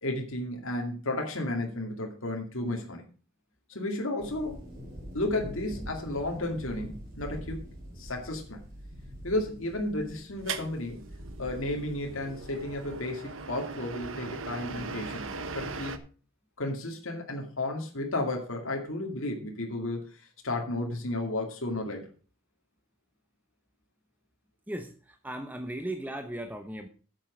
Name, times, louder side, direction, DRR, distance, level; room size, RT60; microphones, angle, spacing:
voice 1, 0.0-3.0 3.7-4.6 5.1-7.6 8.0-8.6 9.2-11.0 11.4-15.3 15.5-15.9 16.6-20.0 20.4-22.0, left 1 dB, 70° left, 1 dB, 2.3 m, -33 dB
sound 1, 4.2-13.0, equal, 40° right, 3.9 m, -44 dB
sound 2, 10.5-16.0, right 4 dB, 70° right, 1.0 m, -39 dB
voice 2, 24.7-26.9, right 1 dB, 10° right, 6 dB, 0.8 m, -37 dB
8.9 x 7.7 x 6.1 m, 0.38 s
head